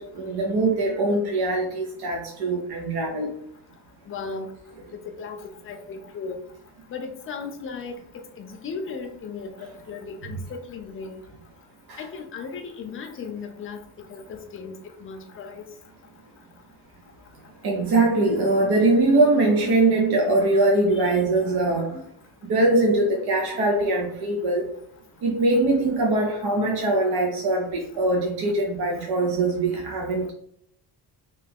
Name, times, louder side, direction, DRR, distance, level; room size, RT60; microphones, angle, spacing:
voice 1, 0.0-3.3 11.9-12.0 17.6-21.9 22.4-24.7 25.2-30.3, right 2 dB, 70° right, -1 dB, 0.8 m, -22 dB
voice 2, 4.1-4.5 4.9-6.4 6.9-8.0 8.4-11.2 12.0-13.8 14.1-15.6 20.9-21.2 21.9-22.0 22.8-22.9, left 5 dB, 35° left, 4 dB, 0.5 m, -36 dB
3.3 x 2.9 x 3.4 m, 0.68 s
cardioid pair, 170°, 39 cm